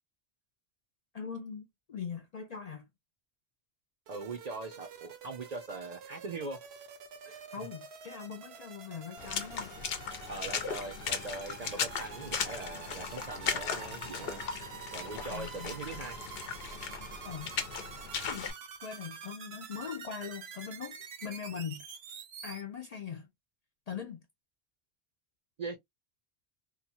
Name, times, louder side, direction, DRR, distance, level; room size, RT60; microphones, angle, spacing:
voice 1, 1.1-2.9 7.5-9.7 15.3-15.7 17.2-17.6 18.3-18.5 18.8-21.9 22.4-23.3 23.9-24.2, left 7 dB, 55° left, 0.5 m, -41 dB
voice 2, 4.1-6.6 7.3-7.4 10.3-14.4 14.9-16.2 25.6-25.8, right 3 dB, 50° right, 0.5 m, -41 dB
sound 1, 4.1-22.6, right 7 dB, 80° right, 0.9 m, -48 dB
Water / Splash splatter, 9.2-18.5, left 6 dB, 70° left, 0.9 m, -37 dB
2.8 x 2.1 x 2.8 m
omnidirectional pair, 1.0 m